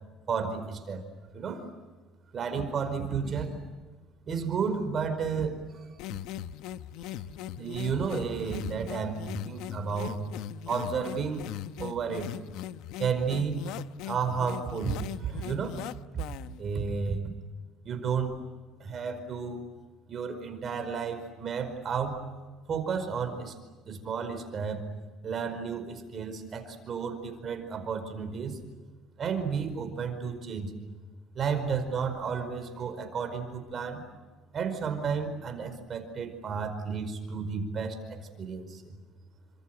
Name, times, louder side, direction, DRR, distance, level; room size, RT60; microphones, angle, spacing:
voice 1, 0.3-1.0 1.3-1.7 2.3-3.6 4.3-5.9 7.6-10.2 10.7-11.5 11.8-12.3 13.0-13.6 14.0-15.8 16.6-17.3 17.8-18.4 18.8-19.6 20.1-22.2 22.7-23.5 23.8-24.8 25.2-28.6 29.2-30.7 31.3-34.0 34.5-38.9, right 6 dB, 30° right, 7 dB, 5.0 m, -32 dB
sound 1, 6.0-16.6, left 12 dB, 70° left, 0.9 m, -40 dB
29.0 x 26.0 x 7.9 m, 1.3 s
cardioid pair, 155°, 0 cm